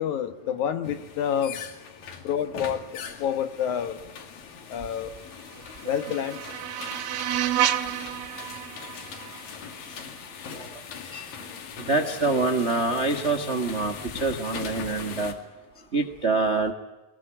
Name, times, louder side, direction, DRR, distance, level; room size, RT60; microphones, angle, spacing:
voice 1, 0.0-1.6 2.2-4.0 4.7-5.1 5.8-6.4, left 8 dB, 65° left, 10 dB, 2.5 m, -28 dB
sound 1, 0.8-15.3, left 7 dB, 85° left, 4.0 m, -40 dB
sound 2, 5.3-10.4, right 11 dB, 85° right, 2.8 m, -30 dB
voice 2, 11.8-15.3 15.9-16.7, right 3 dB, 40° right, 6 dB, 0.9 m, -26 dB
23.0 x 21.0 x 9.9 m, 1.1 s
omnidirectional pair, 3.9 m